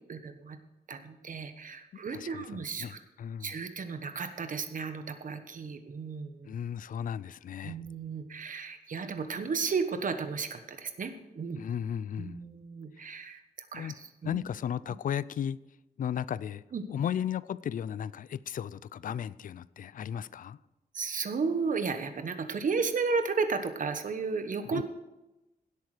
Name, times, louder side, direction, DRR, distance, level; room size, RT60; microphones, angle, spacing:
voice 1, 0.1-0.6 0.9-3.0 3.4-6.6 7.6-11.6 12.2-13.9 14.2-14.3 16.7-16.8 20.9-24.8, right 5 dB, 55° right, 1.2 m, -33 dB
voice 2, 2.1-3.6 6.4-7.8 11.6-12.4 13.0-13.2 13.7-13.9 14.2-15.6 16.0-16.6 16.9-20.6 24.7-24.8, left 9 dB, 60° left, 0.4 m, -35 dB
17.0 x 8.2 x 4.9 m
wide cardioid pair, 155°, 16 cm